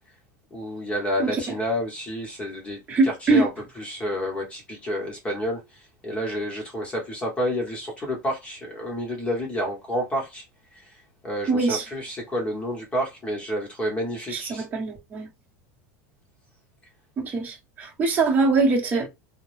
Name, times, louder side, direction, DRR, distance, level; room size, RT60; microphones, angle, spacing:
voice 1, 0.5-3.5 3.8-10.4 10.7-14.6, equal, 15° left, 0.9 m, -30 dB
voice 2, 2.9-3.5 11.5-11.8 14.3-15.3 17.2-19.1, right 3 dB, 20° right, 0.9 m, -23 dB
2.2 x 2.0 x 3.1 m
supercardioid pair, 145°, 8 cm